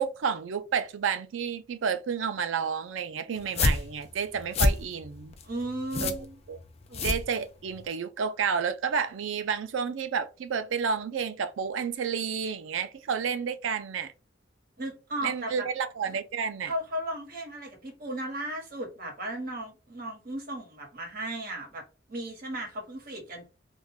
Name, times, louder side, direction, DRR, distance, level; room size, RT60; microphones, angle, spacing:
voice 1, 0.0-5.3 6.0-6.2 6.5-6.6 7.0-14.1 15.2-16.7, right 6 dB, 85° right, 0.4 m, -30 dB
sound 1, 3.4-7.9, left 3 dB, 35° left, 0.4 m, -29 dB
voice 2, 5.4-6.3 6.9-7.0 14.8-15.7 16.6-21.8 22.1-23.5, right 1 dB, 50° right, 1.1 m, -36 dB
2.5 x 2.2 x 3.4 m
head